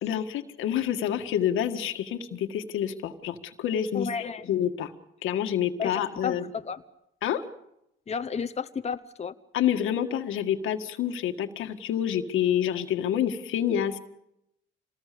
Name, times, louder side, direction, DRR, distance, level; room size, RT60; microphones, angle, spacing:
voice 1, 0.0-4.9 5.2-6.5 7.2-7.4 9.5-14.0, left 10 dB, 85° left, 7 dB, 1.8 m, -28 dB
voice 2, 3.9-4.5 5.8-6.8 8.1-9.3, left 6 dB, 35° left, 8 dB, 1.0 m, -32 dB
26.5 x 19.5 x 6.9 m, 0.82 s
cardioid pair, 90°, 20 cm